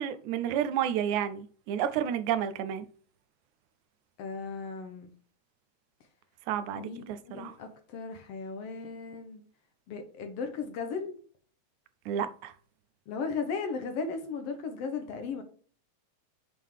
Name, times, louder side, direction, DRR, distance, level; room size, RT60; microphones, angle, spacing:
voice 1, 0.0-2.9 6.5-7.5 12.1-12.5, right 9 dB, 90° right, 2.1 m, -31 dB
voice 2, 4.2-5.1 6.7-9.4 9.9-11.2 13.1-15.4, left 5 dB, 65° left, 1.7 m, -36 dB
7.5 x 3.6 x 4.6 m
omnidirectional pair, 3.3 m